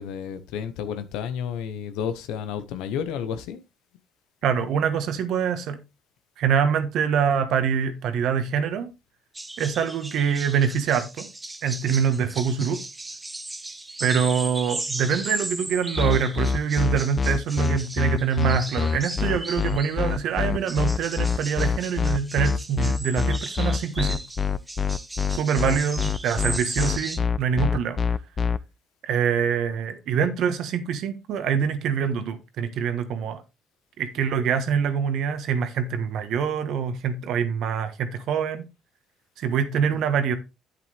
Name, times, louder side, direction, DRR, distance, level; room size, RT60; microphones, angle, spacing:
voice 1, 0.0-3.6 12.1-12.3 39.9-40.0, left 8 dB, 80° left, 0.8 m, -31 dB
voice 2, 4.4-5.8 6.4-8.9 9.6-11.3 11.6-12.8 14.0-24.2 25.3-28.0 29.0-33.4 34.0-38.7 39.4-40.4, right 7 dB, 70° right, 1.3 m, -25 dB
sound 1, 9.3-20.1 20.7-27.2, right 2 dB, 15° right, 0.9 m, -36 dB
sound 2, 16.0-28.6, left 5 dB, 35° left, 0.5 m, -24 dB
8.2 x 7.8 x 3.4 m
supercardioid pair, 85°, 0 cm